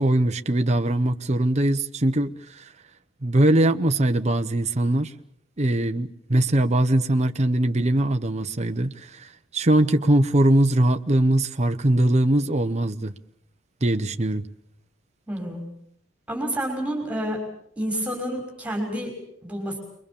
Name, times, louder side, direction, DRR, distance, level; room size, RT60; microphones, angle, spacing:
voice 1, 0.0-2.6 3.2-5.1 5.6-13.1 13.8-14.5, right 1 dB, 35° right, 1.0 m, -21 dB
voice 2, 15.3-15.6 16.3-17.4 17.8-19.8, right 1 dB, 5° right, 5.8 m, -29 dB
29.0 x 23.0 x 7.1 m
head